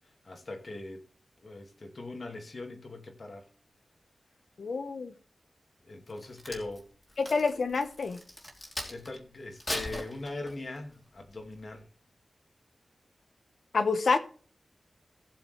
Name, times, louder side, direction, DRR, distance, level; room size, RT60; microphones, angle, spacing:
voice 1, 0.2-1.1 1.4-3.5 5.8-6.8 8.9-11.9, left 2 dB, 55° left, 2.3 m, -40 dB
voice 2, 4.6-5.1 7.2-8.2 13.7-14.2, left 4 dB, 70° left, 1.2 m, -27 dB
Crack, 6.1-9.1 9.6-10.8 11.3-11.5, left 1 dB, 25° left, 3.1 m, -39 dB
16.5 x 6.9 x 3.4 m
wide cardioid pair, 75°, 0 cm